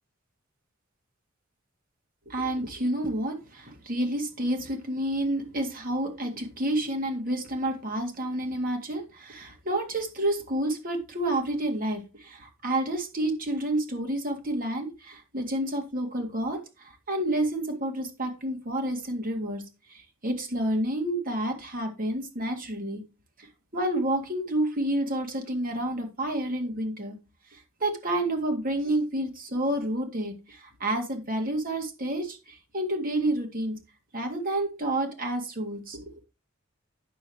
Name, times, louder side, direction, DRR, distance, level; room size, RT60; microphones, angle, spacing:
voice 1, 2.3-19.6 19.9-23.0 23.4-23.5 23.7-27.2 27.5-33.8 34.1-36.1, right 1 dB, 45° right, 2.0 m, -29 dB
9.1 x 6.6 x 3.0 m
head